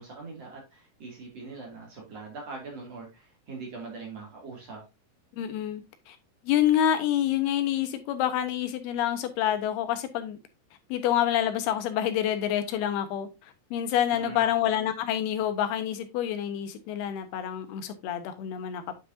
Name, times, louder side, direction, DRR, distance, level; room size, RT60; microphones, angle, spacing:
voice 1, 0.0-4.8 14.1-14.5, right 4 dB, 45° right, 3.0 m, -42 dB
voice 2, 5.4-6.2 6.4-10.4 10.9-18.8, left 10 dB, 90° left, 2.9 m, -27 dB
9.0 x 6.0 x 2.6 m
omnidirectional pair, 4.4 m